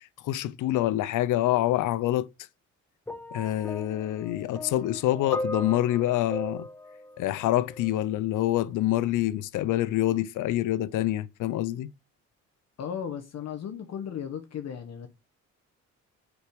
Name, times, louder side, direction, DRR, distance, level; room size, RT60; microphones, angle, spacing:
voice 1, 0.2-2.3 3.3-6.7 7.2-11.9, left 14 dB, 85° left, 0.6 m, -26 dB
sound 1, 3.1-8.2 9.1-9.2, left 1 dB, 5° left, 0.7 m, -38 dB
voice 2, 12.8-15.1, left 8 dB, 60° left, 1.1 m, -35 dB
7.9 x 4.8 x 5.0 m
cardioid pair, 90°, 30 cm